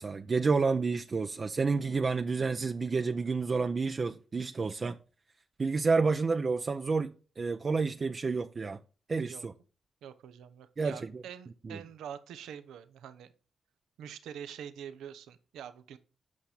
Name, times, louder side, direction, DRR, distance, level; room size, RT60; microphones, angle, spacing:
voice 1, 0.0-5.0 5.6-8.8 9.1-9.5 10.8-11.2 11.6-11.8, right 4 dB, 45° right, 0.6 m, -30 dB
voice 2, 10.0-13.3 14.0-16.0, right 9 dB, 85° right, 0.8 m, -45 dB
8.6 x 5.7 x 6.6 m
supercardioid pair, 55°, 0 cm